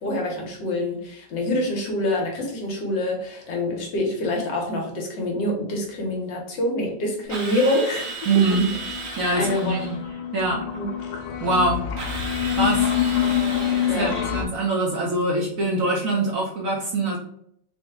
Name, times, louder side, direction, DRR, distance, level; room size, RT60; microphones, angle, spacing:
voice 1, 0.0-8.1 9.3-9.7 10.7-10.9 13.9-14.2, left 1 dB, 70° left, 0 dB, 1.5 m, -26 dB
Drill, 7.3-10.0 12.0-14.5, right 4 dB, 75° right, 1.6 m, -35 dB
sound 1, 7.7-14.5, left 9 dB, 85° left, 1.4 m, -27 dB
voice 2, 8.3-8.6 9.2-9.8 10.3-10.8 11.4-11.9 12.5-12.9 13.9-17.2, right 2 dB, 60° right, -3 dB, 1.0 m, -23 dB
3.9 x 2.2 x 3.5 m, 0.67 s
omnidirectional pair, 2.1 m